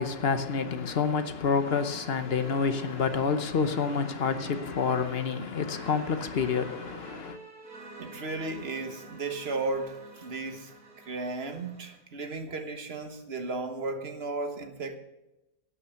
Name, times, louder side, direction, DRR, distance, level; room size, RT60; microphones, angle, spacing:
voice 1, 0.0-7.4, left 5 dB, 50° left, 1.0 m, -28 dB
sound 1, 1.6-12.0, right 1 dB, 85° right, 2.9 m, -48 dB
voice 2, 8.0-10.7 11.0-15.0, right 3 dB, 45° right, 1.4 m, -35 dB
12.0 x 8.7 x 6.8 m
omnidirectional pair, 1.6 m